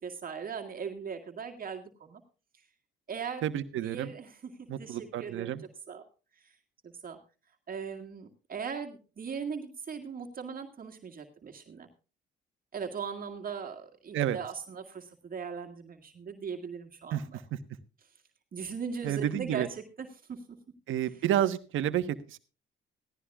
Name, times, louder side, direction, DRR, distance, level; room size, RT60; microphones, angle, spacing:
voice 1, 0.0-2.2 2.5-2.7 3.1-3.5 3.8-6.0 6.3-6.6 6.8-7.2 7.7-11.9 12.7-17.4 18.5-20.6 21.0-21.2, right 6 dB, 45° right, 3 dB, 2.0 m, -39 dB
voice 2, 3.4-4.1 4.7-5.6 14.1-14.4 17.1-17.2 17.5-17.6 19.0-19.7 20.9-22.4, right 11 dB, 80° right, 11 dB, 1.2 m, -30 dB
16.5 x 15.0 x 2.4 m, 0.34 s
cardioid pair, 90°, 20 cm